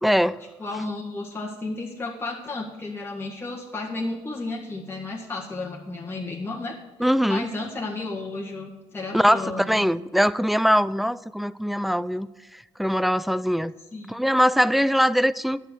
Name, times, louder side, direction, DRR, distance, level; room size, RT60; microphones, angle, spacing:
voice 1, 0.0-0.4 7.0-7.5 9.1-12.3 12.5-13.7 14.1-15.6, equal, ahead, 0.4 m, -22 dB
voice 2, 0.6-9.9 13.9-14.1, left 3 dB, 15° left, 1.7 m, -33 dB
10.5 x 6.9 x 6.2 m
hypercardioid pair, 55°, 14 cm